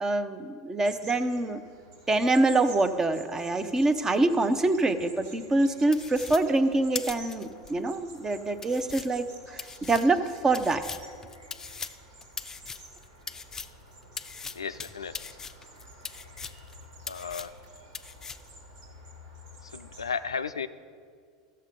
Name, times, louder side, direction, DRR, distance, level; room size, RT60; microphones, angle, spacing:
voice 1, 0.0-1.6 2.1-10.8, right 2 dB, 20° right, 11 dB, 0.7 m, -25 dB
sound 1, 0.8-20.1, right 1 dB, 70° right, 2.3 m, -50 dB
sound 2, 5.9-7.7 8.2-8.3 8.6-13.8 14.2-16.7 17.0-17.7 17.9-18.5, left 5 dB, 20° left, 0.4 m, -40 dB
voice 2, 14.5-15.3 17.1-17.5 19.6-20.7, left 6 dB, 90° left, 12 dB, 0.3 m, -34 dB
14.0 x 6.7 x 5.1 m, 2.2 s
hypercardioid pair, 85°, 3 cm